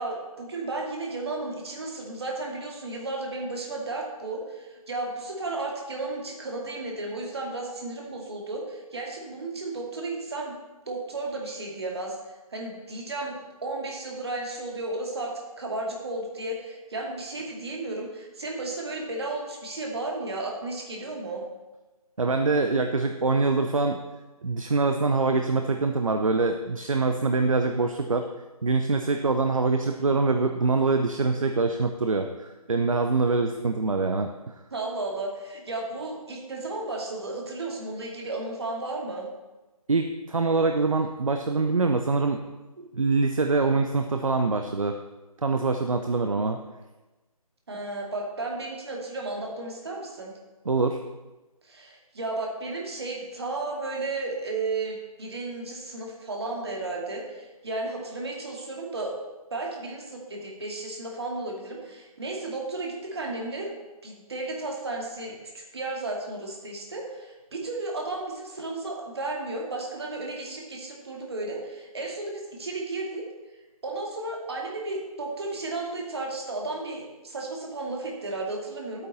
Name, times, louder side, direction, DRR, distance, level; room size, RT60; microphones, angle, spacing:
voice 1, 0.0-10.6 10.9-12.2 12.5-21.4 34.7-39.3 47.7-50.3 51.6-59.1 59.5-63.7 64.0-73.2 73.8-79.1, right 2 dB, 45° right, -1 dB, 2.3 m, -33 dB
voice 2, 22.2-24.0 24.4-28.3 28.6-34.3 39.9-42.4 42.8-45.0 45.4-46.6 50.7-51.0, right 3 dB, 60° right, 6 dB, 0.8 m, -24 dB
11.5 x 8.6 x 4.1 m, 1.1 s
figure-of-eight pair, 155°, 19 cm